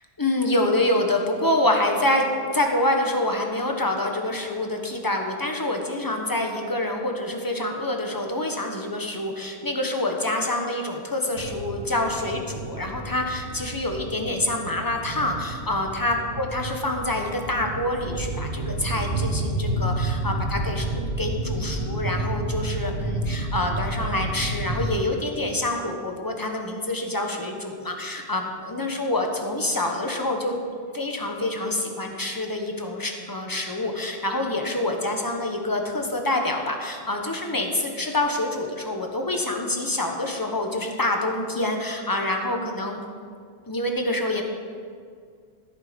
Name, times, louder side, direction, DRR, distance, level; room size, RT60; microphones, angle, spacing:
voice 1, 0.2-30.6 30.9-43.0 43.7-44.4, left 1 dB, 20° left, 2 dB, 1.2 m, -26 dB
sound 1, 11.3-24.9, right 2 dB, 55° right, 1.9 m, -30 dB
14.0 x 8.3 x 5.2 m, 2.1 s
omnidirectional pair, 1.1 m